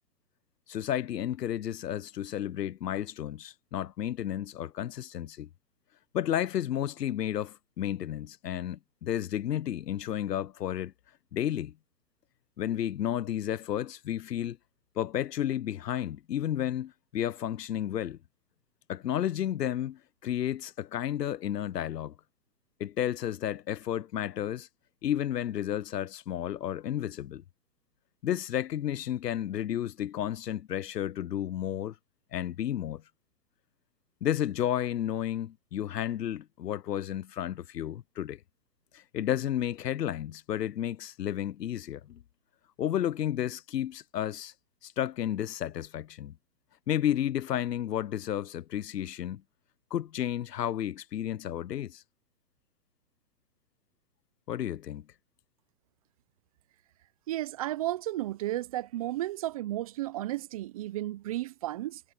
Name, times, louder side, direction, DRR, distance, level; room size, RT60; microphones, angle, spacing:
voice 1, 0.7-5.5 6.1-10.9 11.3-11.7 12.6-14.6 15.0-18.2 18.9-22.1 22.8-24.7 25.0-27.4 28.2-31.9 32.3-33.0 34.2-38.4 38.9-42.2 42.8-44.5 44.8-46.3 46.9-49.4 49.9-52.0 54.5-55.0, left 11 dB, 85° left, 0.7 m, -32 dB
voice 2, 57.3-62.0, right 15 dB, 25° right, 0.5 m, -33 dB
hypercardioid pair, 135°, 47 cm